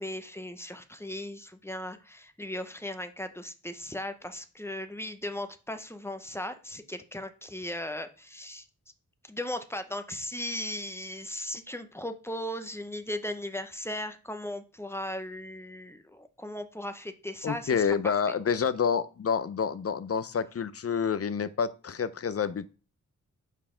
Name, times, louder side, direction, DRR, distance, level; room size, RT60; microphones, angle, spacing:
voice 1, 0.0-8.7 9.3-17.7, left 1 dB, 10° left, 8 dB, 0.7 m, -37 dB
voice 2, 17.4-22.7, left 6 dB, 45° left, 14 dB, 0.6 m, -28 dB
5.7 x 4.6 x 5.0 m, 0.35 s
wide cardioid pair, 80°, 33 cm